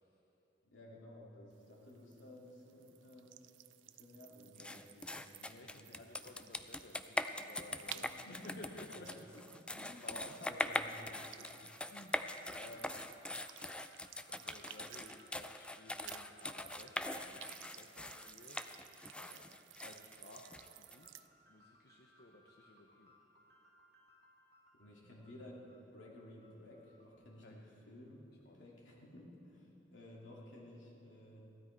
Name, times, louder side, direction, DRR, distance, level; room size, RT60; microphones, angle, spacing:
voice 1, 0.6-3.4 3.8-6.3 7.8-8.6 8.9-9.5 9.7-11.2 24.7-28.3 28.5-31.5, left 1 dB, 85° left, -3 dB, 2.6 m, -55 dB
sound 1, 1.5-15.8 16.0-21.3, right 13 dB, 75° right, 0.4 m, -56 dB
sound 2, 4.6-21.0, left 1 dB, 5° left, 0.3 m, -42 dB
voice 2, 5.4-9.3 9.7-10.7 11.4-13.1 14.3-18.6 19.2-19.5 19.8-21.1 21.5-23.1 27.4-27.5 28.5-28.7, left 1 dB, 55° left, 1 dB, 0.8 m, -56 dB
sound 3, 10.5-27.2, left 1 dB, 60° right, 1.8 m, -68 dB
16.0 x 12.5 x 4.6 m, 3.0 s
head